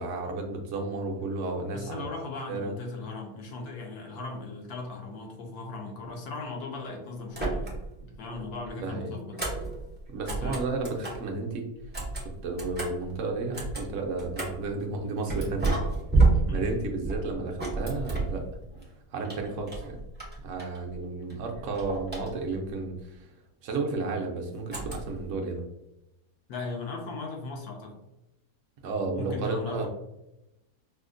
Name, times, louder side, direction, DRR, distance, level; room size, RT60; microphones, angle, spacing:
voice 1, 0.0-2.1 2.5-2.7 8.8-9.1 10.1-11.6 12.4-15.8 16.5-18.5 19.1-20.0 20.4-23.3 23.6-25.6 28.8-29.9, right 3 dB, 65° right, 2 dB, 0.8 m, -32 dB
voice 2, 1.7-9.4 10.3-10.7 16.5-16.7 26.5-28.0 29.1-29.9, left 3 dB, 75° left, 1 dB, 1.3 m, -38 dB
sound 1, 7.3-8.0 8.3-11.3 11.8-14.7 15.3-18.9 19.2-21.0 21.3-22.7 24.7-25.3, right 3 dB, 15° right, 0.3 m, -30 dB
4.9 x 2.1 x 2.5 m, 0.91 s
omnidirectional pair, 1.7 m